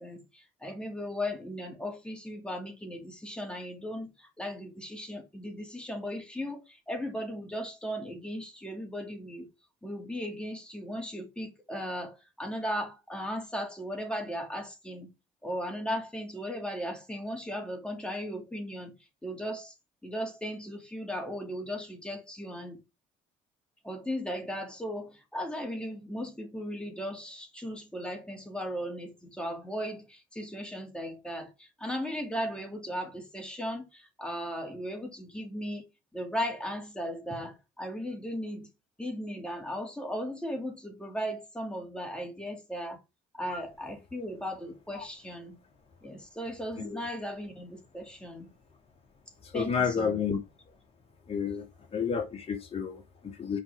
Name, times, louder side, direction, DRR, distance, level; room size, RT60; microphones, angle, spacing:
voice 1, 0.0-9.5 9.8-15.1 15.4-19.7 20.0-22.8 23.8-35.8 36.1-38.7 39.0-43.0 43.3-45.6 46.0-48.5 49.5-50.2, equal, 5° left, 2.8 m, -37 dB
voice 2, 49.5-50.4 51.3-51.6 51.9-53.6, left 6 dB, 35° left, 2.4 m, -30 dB
6.5 x 4.7 x 4.8 m
cardioid pair, 110°, 17 cm